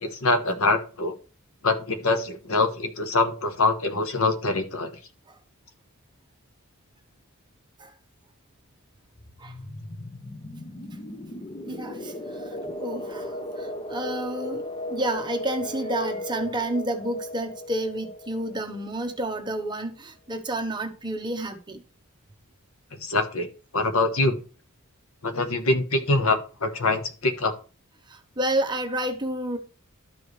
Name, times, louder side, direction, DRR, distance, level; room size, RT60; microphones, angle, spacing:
voice 1, 0.0-1.1 1.6-5.0 22.9-24.4 25.2-27.5, left 3 dB, 65° left, 1.1 m, -24 dB
sound 1, 9.2-19.7, left 1 dB, 25° left, 0.7 m, -36 dB
voice 2, 11.6-12.4 12.8-21.8 28.1-29.6, right 1 dB, 20° right, 1.0 m, -30 dB
12.5 x 5.0 x 3.2 m
head